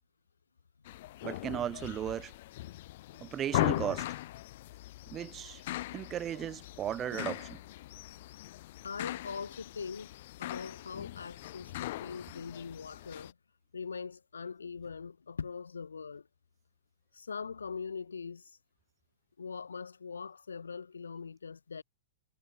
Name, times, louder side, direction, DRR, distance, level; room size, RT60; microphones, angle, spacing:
sound 1, 0.9-13.3, left 16 dB, 50° left, 1.6 m, -39 dB
voice 1, 1.2-2.3 3.2-4.1 5.1-5.6 5.9-7.6, right 10 dB, 25° right, 0.7 m, -36 dB
voice 2, 8.8-10.1 10.4-13.3 13.7-16.3 17.1-18.6 19.4-21.8, left 5 dB, 75° left, 1.2 m, -42 dB
figure-of-eight pair, 100°, 0 cm